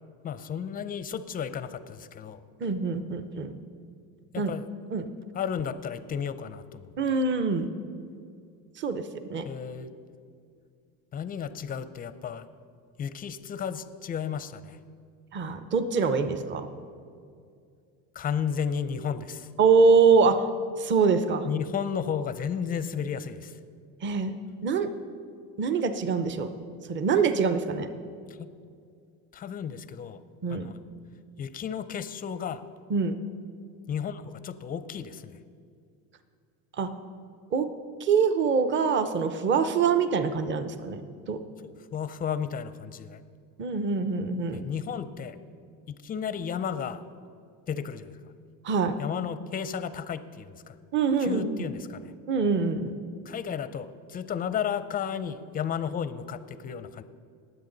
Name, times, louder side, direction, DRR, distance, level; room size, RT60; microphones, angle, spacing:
voice 1, 0.2-2.4 4.3-4.7 5.3-7.2 9.4-9.9 11.1-12.5 13.0-14.8 18.1-19.5 21.5-23.6 28.3-28.5 29.3-30.2 30.5-30.8 31.4-32.6 33.9-35.4 41.6-43.2 44.5-45.4 45.9-47.0 47.7-48.2 49.0-50.8 51.2-52.1 53.3-57.0, left 7 dB, 20° left, 13 dB, 0.5 m, -33 dB
voice 2, 2.6-3.5 4.4-4.5 4.9-5.1 7.0-7.7 8.8-9.0 9.3-9.5 15.3-16.7 19.6-20.4 20.8-21.5 24.0-24.4 24.6-24.9 25.6-26.5 26.9-27.9 30.4-30.7 32.9-33.1 36.8-36.9 37.5-37.7 38.0-41.0 41.3-41.4 43.6-44.6 48.6-49.0 50.9-51.6 52.3-53.0, right 5 dB, 30° right, 10 dB, 0.7 m, -24 dB
20.5 x 8.0 x 3.9 m, 2.3 s
cardioid pair, 125°, 41 cm